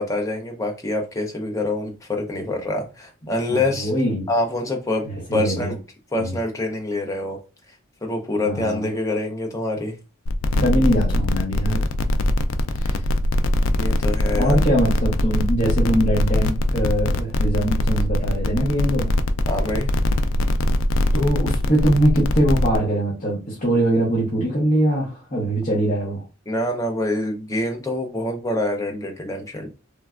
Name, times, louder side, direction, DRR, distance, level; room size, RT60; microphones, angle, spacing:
voice 1, 0.0-3.9 4.3-5.1 5.3-5.7 6.1-7.4 8.0-9.9 13.7-14.6 19.5-19.9 26.5-29.7, left 2 dB, 15° left, 2 dB, 0.5 m, -25 dB
voice 2, 3.5-4.2 5.0-5.7 6.2-6.4 8.4-8.9 10.6-11.9 12.7-13.1 14.4-19.1 21.1-26.2, right 1 dB, 40° left, -5 dB, 0.8 m, -22 dB
sound 1, 10.3-22.8, left 1 dB, 70° left, 0.3 m, -21 dB
3.2 x 2.2 x 2.3 m, 0.31 s
head